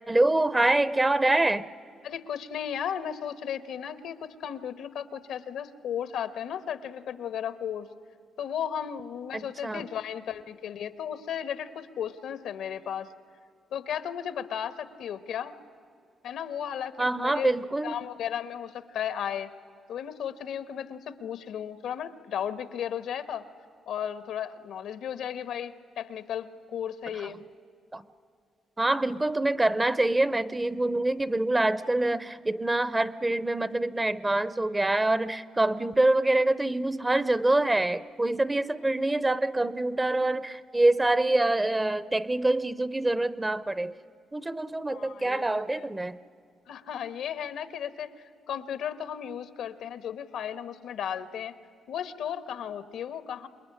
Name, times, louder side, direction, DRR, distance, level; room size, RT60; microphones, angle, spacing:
voice 1, 0.1-1.7 9.3-9.9 17.0-18.0 27.2-27.4 27.9-28.0 28.8-43.9 44.3-46.2, right 2 dB, 15° right, 16 dB, 0.6 m, -25 dB
voice 2, 2.0-7.9 8.4-13.1 13.7-15.5 16.2-17.5 17.8-19.5 19.9-23.5 23.9-27.4 44.9-45.9 46.7-48.1 48.5-51.5 51.9-53.5, left 9 dB, 85° left, 12 dB, 1.3 m, -35 dB
27.0 x 21.0 x 9.9 m, 2.3 s
cardioid pair, 120°, 0 cm